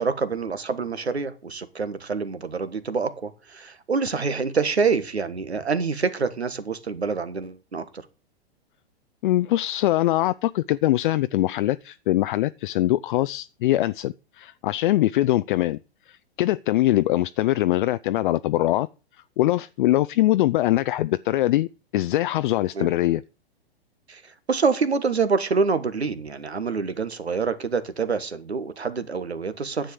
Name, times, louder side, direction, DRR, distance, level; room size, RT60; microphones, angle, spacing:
voice 1, 0.0-7.8 22.7-22.9 24.1-29.9, right 5 dB, 85° right, 1.4 m, -26 dB
voice 2, 9.2-15.8 16.1-18.9 19.4-23.2, left 15 dB, 55° left, 0.5 m, -22 dB
10.5 x 7.6 x 6.4 m
figure-of-eight pair, 105°, 31 cm